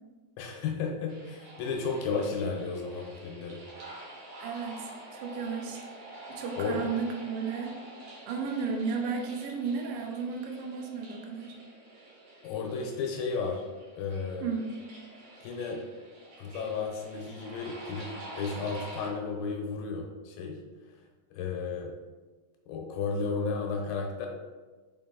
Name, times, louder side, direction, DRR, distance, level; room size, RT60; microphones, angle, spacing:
voice 1, 0.4-3.6 6.6-6.8 12.4-13.6 14.0-14.4 15.4-15.8 16.4-20.6 21.3-21.9 22.7-24.3, left 4 dB, 80° left, 1 dB, 2.4 m, -33 dB
sound 1, 1.1-19.1, right 1 dB, 55° right, 2.4 m, -47 dB
voice 2, 4.4-5.8 6.3-7.8 8.3-11.6 14.4-14.7, right 5 dB, 85° right, 2 dB, 2.0 m, -33 dB
5.9 x 4.7 x 3.9 m, 1.3 s
omnidirectional pair, 4.8 m